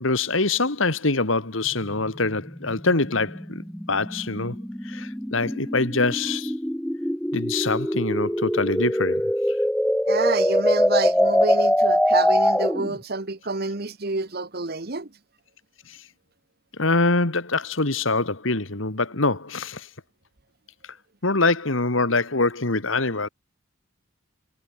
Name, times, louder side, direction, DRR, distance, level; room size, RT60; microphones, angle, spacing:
voice 1, 0.0-4.6 4.8-6.5 7.3-9.3 16.8-19.9 21.2-23.3, left 3 dB, 70° left, 2.3 m, -24 dB
sound 1, 1.6-13.0, equal, 5° left, 0.9 m, -23 dB
voice 2, 10.1-15.2, right 3 dB, 50° right, 1.2 m, -28 dB
head